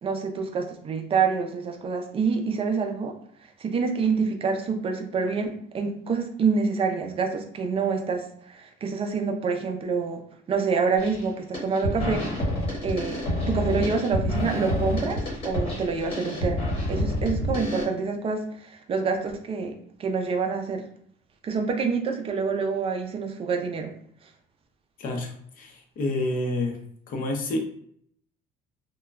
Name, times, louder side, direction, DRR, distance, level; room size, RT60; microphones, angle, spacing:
voice 1, 0.0-3.1 3.6-10.2 10.5-12.3 12.8-20.9 21.4-23.9, right 5 dB, 30° right, 4 dB, 0.4 m, -27 dB
sound 1, 11.0-11.2 11.5-17.8, left 1 dB, 35° left, 1.2 m, -28 dB
voice 2, 25.0-26.8 27.1-27.6, left 2 dB, 50° left, 2 dB, 0.7 m, -29 dB
3.0 x 2.2 x 2.3 m, 0.64 s
cardioid pair, 130°, 18 cm